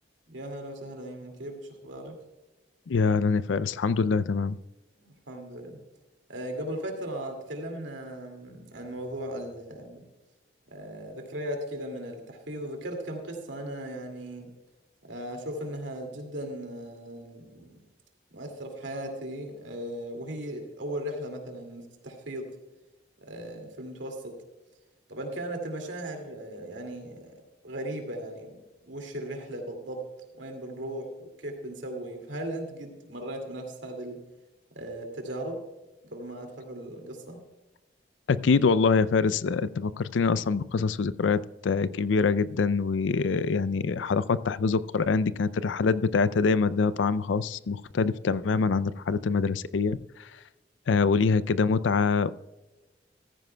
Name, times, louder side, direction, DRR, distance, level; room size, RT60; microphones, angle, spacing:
voice 1, 0.3-2.2 5.0-5.8 6.3-10.1 10.7-14.5 15.0-17.8 18.3-22.5 23.2-24.4 25.1-27.3 27.6-28.6 28.8-30.1 30.4-34.2 34.7-35.6 36.0-37.4, right 1 dB, 85° right, 3 dB, 2.3 m, -37 dB
voice 2, 2.9-4.6 38.3-50.3 50.9-52.3, left 4 dB, 90° left, 17 dB, 0.4 m, -25 dB
14.5 x 14.5 x 2.2 m, 1.1 s
head